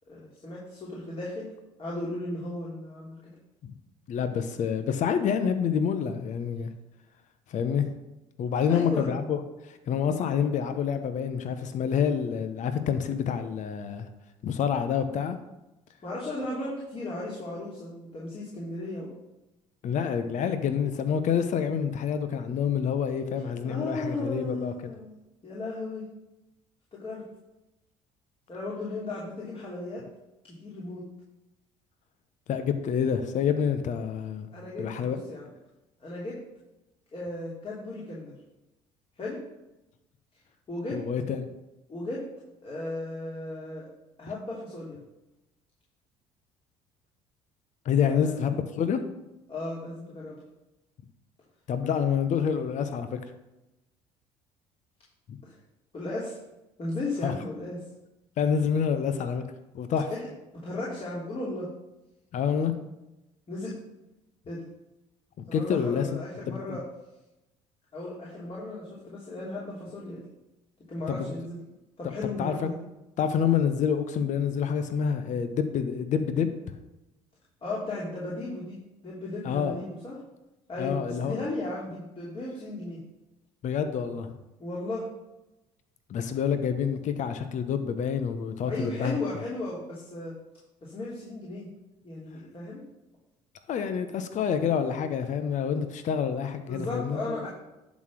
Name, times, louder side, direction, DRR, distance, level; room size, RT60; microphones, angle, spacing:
voice 1, 0.1-1.5 1.8-3.3 8.7-9.1 16.0-19.1 23.6-25.1 25.4-26.0 26.9-27.2 28.5-30.0 30.6-31.0 34.5-35.5 36.0-36.4 37.1-38.3 39.2-39.4 40.7-41.0 41.9-42.2 42.6-43.9 44.2-45.0 47.9-48.5 49.5-50.4 55.4-55.5 55.9-56.4 56.8-57.8 60.1-60.3 60.5-61.7 63.5-63.7 64.5-64.6 65.5-66.8 67.9-70.2 70.9-71.6 72.0-72.8 77.6-78.8 79.0-80.2 80.7-83.0 84.6-85.0 88.7-90.3 90.8-91.7 92.0-92.8 96.7-97.5, left 2 dB, 40° left, -6 dB, 3.3 m, -35 dB
voice 2, 4.1-6.7 7.5-8.0 8.4-14.1 14.4-15.4 19.8-24.7 32.5-34.5 34.8-35.2 40.9-41.5 47.8-49.0 51.7-53.2 55.3-55.4 57.2-57.3 58.4-59.4 59.7-60.1 62.3-62.7 65.5-66.1 66.5-66.8 71.1-71.3 72.4-72.7 73.2-76.5 79.4-79.8 80.8-81.4 83.6-84.4 86.1-89.2 93.7-97.5, left 7 dB, 55° left, 9 dB, 1.0 m, -27 dB
11.0 x 4.2 x 6.3 m, 0.97 s
hypercardioid pair, 65°, 15 cm